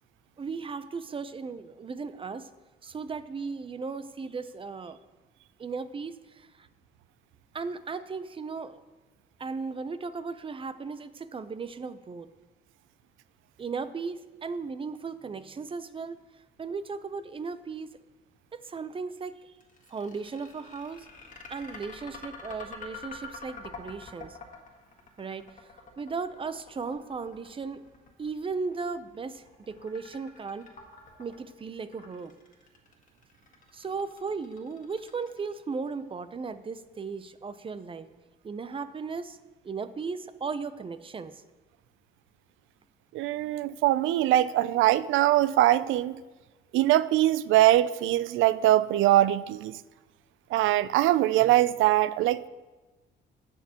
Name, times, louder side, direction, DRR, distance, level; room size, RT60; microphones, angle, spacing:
voice 1, 0.4-2.5 2.8-5.0 5.6-6.7 7.5-8.8 9.4-12.3 13.6-16.2 16.6-17.9 18.7-19.5 19.9-21.1 21.5-24.4 25.2-25.7 26.0-27.8 28.2-30.7 31.2-32.3 33.7-38.1 38.4-39.4 39.6-41.4, right 4 dB, 25° right, 0.5 m, -36 dB
sound 1, 19.6-35.7, left 4 dB, 40° left, 1.6 m, -47 dB
voice 2, 43.1-46.2 46.7-49.8 50.5-52.5, right 14 dB, 80° right, 0.4 m, -22 dB
17.0 x 6.0 x 2.9 m
cardioid pair, 100°, 20 cm